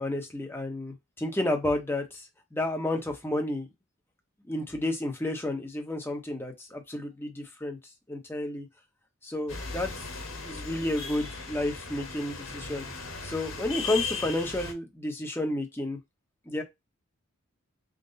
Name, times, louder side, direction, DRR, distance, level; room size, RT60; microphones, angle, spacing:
voice 1, 0.0-2.3 2.5-3.7 4.5-7.8 8.1-8.7 9.2-9.9 10.4-12.8 13.2-16.0 16.5-16.6, left 1 dB, 10° left, 0.9 m, -31 dB
sound 1, 9.5-14.7, left 4 dB, 75° left, 1.4 m, -37 dB
3.9 x 2.2 x 4.0 m
head